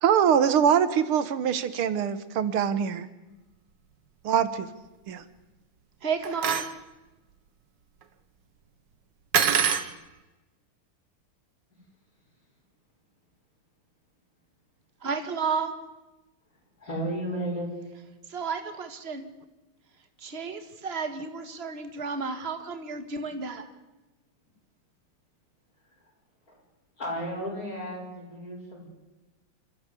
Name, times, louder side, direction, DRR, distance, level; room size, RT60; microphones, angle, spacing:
voice 1, 0.0-3.1 4.2-4.7 5.1-5.2, right 8 dB, 90° right, 14 dB, 2.1 m, -23 dB
voice 2, 6.0-6.6 15.0-15.7 18.3-19.2 20.2-23.6, right 5 dB, 30° right, 8 dB, 1.9 m, -32 dB
sound 1, 6.2-6.7 9.3-9.9, right 8 dB, 60° right, 1.8 m, -24 dB
voice 3, 16.8-17.8 27.0-28.9, right 1 dB, 40° left, -1 dB, 6.9 m, -33 dB
27.5 x 14.0 x 8.4 m, 1.1 s
omnidirectional pair, 2.3 m